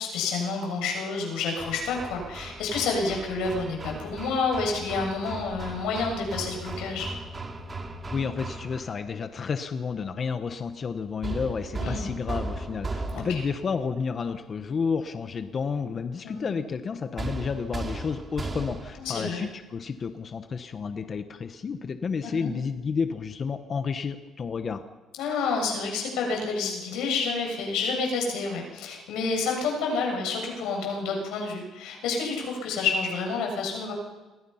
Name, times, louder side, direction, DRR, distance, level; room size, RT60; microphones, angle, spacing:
voice 1, 0.0-7.1 11.8-12.1 13.1-13.4 16.2-16.4 19.0-19.4 22.2-22.5 25.2-33.9, left 4 dB, 90° left, 1 dB, 7.4 m, -29 dB
Hammer, 1.6-9.0 11.2-13.6 17.2-19.1, right 2 dB, 25° right, 2.6 m, -36 dB
voice 2, 8.1-24.8, left 5 dB, 35° left, 8 dB, 1.0 m, -31 dB
30.0 x 22.5 x 5.8 m, 1.2 s
cardioid pair, 135°, 0 cm